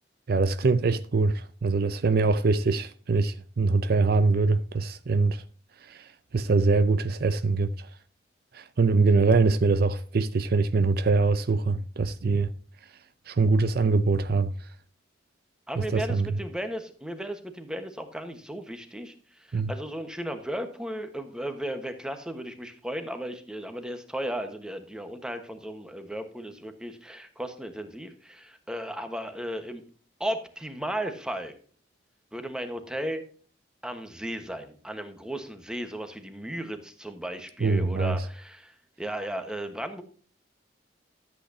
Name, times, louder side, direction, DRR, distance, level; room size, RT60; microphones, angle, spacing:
voice 1, 0.3-5.4 5.9-6.0 6.3-7.9 8.5-12.5 13.3-14.5 15.8-16.3 19.5-19.7 37.6-38.2, right 3 dB, 55° right, 0.5 m, -23 dB
voice 2, 15.7-29.8 30.2-31.6 32.3-33.2 33.8-40.0, right 1 dB, 5° right, 1.2 m, -35 dB
13.0 x 8.4 x 2.7 m
head